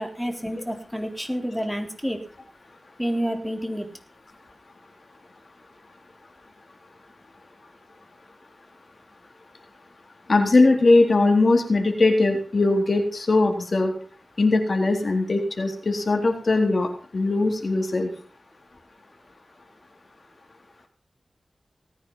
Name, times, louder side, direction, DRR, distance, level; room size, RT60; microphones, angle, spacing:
voice 1, 0.0-2.2 3.0-3.9, equal, ahead, 5 dB, 3.8 m, -29 dB
voice 2, 10.3-13.9 14.4-18.1, left 2 dB, 60° left, 3 dB, 3.7 m, -20 dB
19.0 x 9.6 x 5.6 m, 0.42 s
cardioid pair, 45°, 0 cm